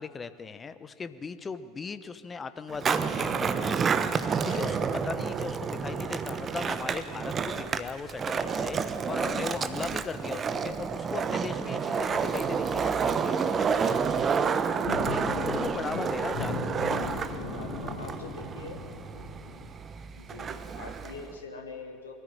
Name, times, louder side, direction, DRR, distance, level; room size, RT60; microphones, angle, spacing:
voice 1, 0.0-13.7 15.0-17.0, left 5 dB, 25° left, 12 dB, 1.1 m, -38 dB
Skateboard, 2.7-21.3, right 6 dB, 30° right, 1.0 m, -30 dB
sound 1, 2.9-10.9 11.2-11.3 12.0-12.3 12.6-13.0 13.4-13.5 13.8-19.7, left 3 dB, 55° left, 5.6 m, -40 dB
voice 2, 7.3-7.8 17.3-18.8 20.2-22.2, left 4 dB, 75° left, 5 dB, 1.6 m, -44 dB
22.5 x 14.5 x 9.0 m, 2.1 s
figure-of-eight pair, 75°, 0 cm